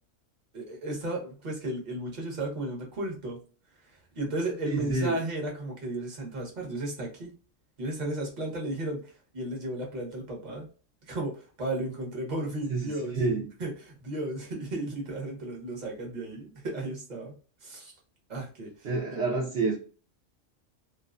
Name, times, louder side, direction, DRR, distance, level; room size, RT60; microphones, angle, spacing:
voice 1, 0.5-3.4 3.8-7.3 7.8-10.7 11.1-13.1 13.6-17.4 17.6-17.9 18.3-19.2, right 1 dB, 40° right, 1.0 m, -34 dB
voice 2, 4.7-5.2 12.7-13.5 18.8-19.8, right 3 dB, 60° right, 0.9 m, -28 dB
2.5 x 2.3 x 2.4 m
omnidirectional pair, 1.3 m